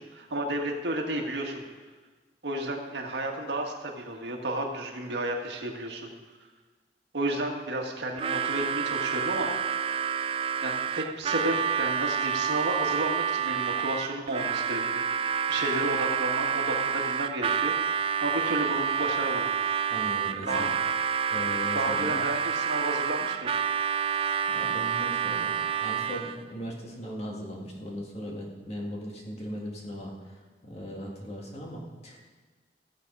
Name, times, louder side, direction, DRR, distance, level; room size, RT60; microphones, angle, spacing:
voice 1, 0.0-1.6 2.4-6.1 7.1-9.5 10.6-17.7 18.2-19.5 20.4-20.7 21.7-23.6, right 1 dB, 75° right, 2 dB, 1.7 m, -32 dB
Harmonica, 8.2-26.4, right 7 dB, 30° right, 0.4 m, -28 dB
voice 2, 19.9-20.7 21.3-22.2 24.5-30.1 30.6-32.3, equal, 35° left, -1 dB, 2.0 m, -38 dB
16.0 x 7.6 x 5.5 m, 1.4 s
head